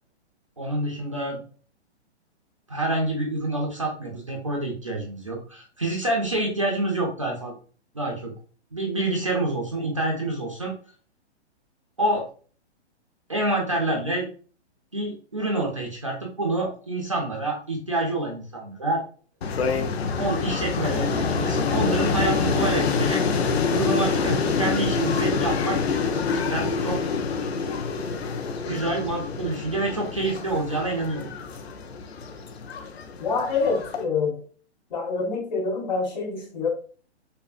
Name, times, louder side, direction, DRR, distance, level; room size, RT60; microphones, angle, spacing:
voice 1, 0.6-1.4 2.7-7.5 7.9-8.3 8.7-10.7 12.0-12.2 13.3-14.3 14.9-19.0 20.2-23.2 23.7-25.8 26.3-27.0 28.7-31.3, right 2 dB, 30° right, -1 dB, 0.4 m, -27 dB
sound 1, 19.4-34.0, left 5 dB, 65° left, 0.6 m, -26 dB
voice 2, 33.2-34.4 34.9-36.7, left 4 dB, 40° left, 1 dB, 1.0 m, -26 dB
5.3 x 2.0 x 2.4 m, 0.41 s
hypercardioid pair, 180°, 34 cm